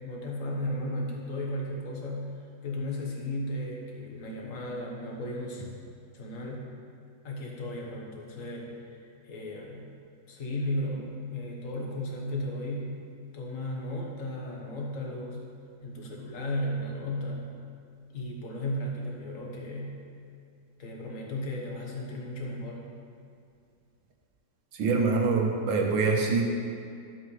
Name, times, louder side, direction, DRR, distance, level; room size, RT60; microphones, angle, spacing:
voice 1, 0.0-2.3 2.6-5.6 6.1-6.6 7.2-8.7 9.2-9.9 10.3-13.0 13.3-15.4 15.8-17.5 18.1-20.0 20.8-22.8, left 1 dB, 45° left, -1 dB, 1.6 m, -35 dB
voice 2, 24.7-26.4, right 4 dB, 80° right, 1 dB, 1.8 m, -25 dB
12.5 x 7.8 x 3.3 m, 2.4 s
omnidirectional pair, 2.1 m